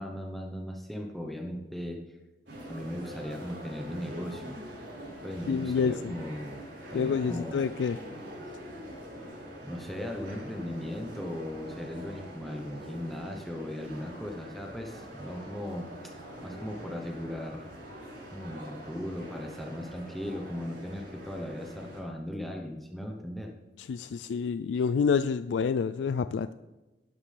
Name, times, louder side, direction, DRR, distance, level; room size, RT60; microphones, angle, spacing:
voice 1, 0.0-2.2 2.7-4.6 5.2-6.6 6.9-7.6 9.6-17.7 18.3-23.5, left 1 dB, ahead, 0 dB, 0.9 m, -38 dB
sound 1, 2.5-22.0, equal, 80° right, 4.3 m, -44 dB
voice 2, 5.5-6.1 6.9-8.0 23.8-26.5, left 6 dB, 85° left, 13 dB, 0.3 m, -28 dB
11.5 x 11.0 x 3.4 m, 1.1 s
head